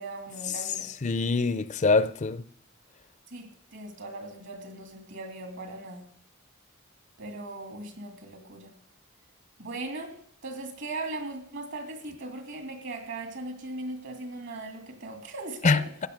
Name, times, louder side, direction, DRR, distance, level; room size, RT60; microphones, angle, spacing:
voice 1, 0.0-0.9 3.3-6.1 7.2-8.7 9.6-15.9, right 2 dB, 65° right, 2.6 m, -39 dB
voice 2, 1.0-2.4 15.6-16.1, left 3 dB, 35° left, 0.5 m, -24 dB
15.0 x 9.3 x 6.7 m
head